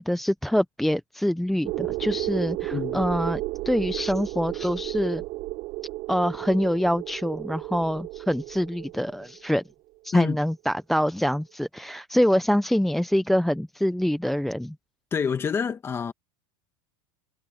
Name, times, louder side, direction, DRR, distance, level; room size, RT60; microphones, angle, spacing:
voice 1, 0.0-5.2 6.1-9.6 10.0-14.7, equal, ahead, 0.5 m, -25 dB
sound 1, 1.6-9.5, right 19 dB, 50° right, 4.9 m, -33 dB
voice 2, 2.7-3.0 10.1-10.4 15.1-16.1, left 6 dB, 20° left, 1.7 m, -27 dB
supercardioid pair, 145°, 12 cm